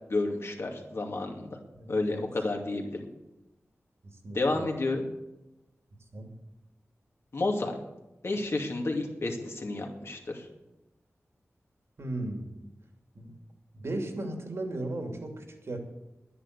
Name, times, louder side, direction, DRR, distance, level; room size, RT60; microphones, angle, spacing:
voice 1, 0.1-1.6 1.9-3.0 4.3-5.1 7.3-7.8 8.2-10.4, left 2 dB, 60° left, 2 dB, 2.5 m, -30 dB
voice 2, 1.7-2.2 4.0-4.6 6.1-6.3 12.0-12.6 13.1-13.3 13.7-15.8, right 2 dB, 65° right, 3 dB, 2.7 m, -36 dB
11.5 x 9.8 x 8.2 m, 0.97 s
wide cardioid pair, 85°, 5 cm